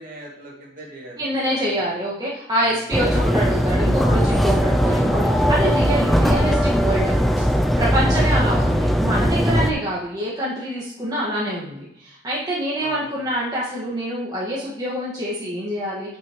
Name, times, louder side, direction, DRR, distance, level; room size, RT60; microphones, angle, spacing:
voice 1, 0.0-1.3 1.8-1.9 2.6-2.8 9.3-9.5 12.8-13.4, right 1 dB, 50° right, -3 dB, 2.3 m, -41 dB
voice 2, 1.2-7.1 7.8-16.2, equal, 20° right, -6 dB, 1.5 m, -26 dB
sound 1, 2.9-9.7, equal, ahead, 0.5 m, -19 dB
9.5 x 6.2 x 3.0 m, 0.78 s
head